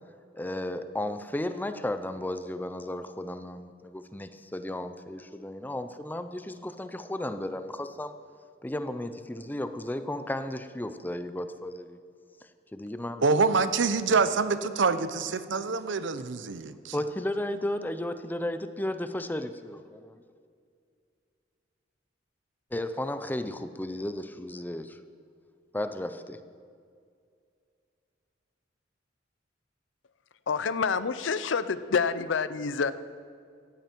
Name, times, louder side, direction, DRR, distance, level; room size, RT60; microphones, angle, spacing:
voice 1, 0.3-8.1 8.6-12.0 12.7-13.2 14.0-14.1 16.9-20.1 22.7-25.0 25.7-26.4, left 1 dB, 10° left, 10 dB, 0.5 m, -34 dB
voice 2, 13.2-16.9, right 4 dB, 75° right, 12 dB, 0.8 m, -26 dB
voice 3, 30.5-32.9, left 5 dB, 80° left, 14 dB, 0.6 m, -27 dB
16.5 x 14.5 x 4.6 m, 2.3 s
head